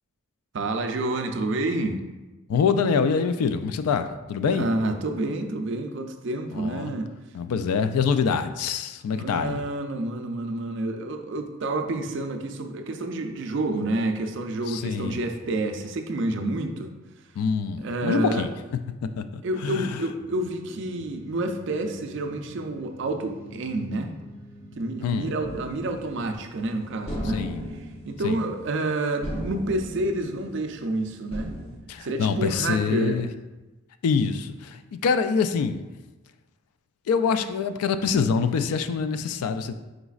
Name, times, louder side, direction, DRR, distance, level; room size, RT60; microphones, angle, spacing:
voice 1, 0.5-2.0 4.5-7.1 9.1-16.9 17.8-18.5 19.4-24.1 24.8-27.4 27.7-31.5 32.0-33.2, right 2 dB, 55° right, 6 dB, 0.4 m, -29 dB
voice 2, 2.5-4.7 6.5-6.9 7.3-9.6 14.7-15.2 17.4-18.5 19.0-20.0 25.0-25.3 27.2-27.7 28.2-28.4 31.9-33.3 34.0-35.9 37.1-39.7, left 5 dB, 85° left, 10 dB, 0.3 m, -25 dB
sound 1, 20.1-26.4, equal, 10° right, 0.7 m, -47 dB
sound 2, 25.4-26.7 27.1-28.9 29.2-30.9 31.3-31.8, equal, 25° left, 0.7 m, -36 dB
5.0 x 3.9 x 2.4 m, 1.1 s
head